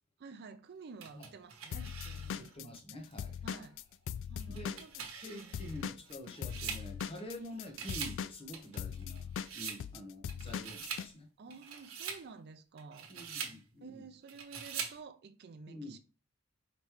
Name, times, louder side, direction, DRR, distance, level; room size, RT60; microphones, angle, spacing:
voice 1, 0.2-2.5 3.4-3.8 4.3-5.5 11.4-13.1 13.8-16.0, right 4 dB, 50° right, 0.5 m, -51 dB
sound 1, 1.0-2.5 3.1-3.2 4.4-7.4 7.7-8.2 8.5-9.8 10.3-11.1 11.5-12.2 12.8-13.6 14.3-15.0, right 7 dB, 70° right, 1.0 m, -43 dB
Drum kit / Drum, 1.7-5.3 5.5-11.1, left 8 dB, 60° left, 0.3 m, -40 dB
voice 2, 2.3-3.6 4.5-4.8 5.1-11.3 13.1-14.1 15.7-16.0, left 1 dB, 25° left, 1.1 m, -47 dB
5.0 x 3.2 x 3.0 m
head